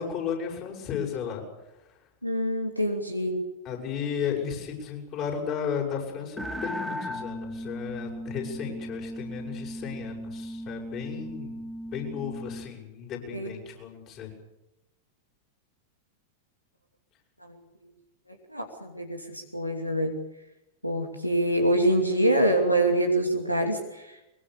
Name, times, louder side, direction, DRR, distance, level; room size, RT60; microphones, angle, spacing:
voice 1, 0.0-1.4 3.6-11.5 11.8-14.3, left 7 dB, 35° left, 2 dB, 7.9 m, -34 dB
voice 2, 2.2-3.4 13.3-13.5 18.5-20.1 20.8-24.2, right 1 dB, 90° left, 4 dB, 2.8 m, -25 dB
sound 1, 6.4-12.7, equal, 5° left, 1.9 m, -37 dB
23.5 x 23.0 x 6.9 m, 0.93 s
figure-of-eight pair, 90°, 0 cm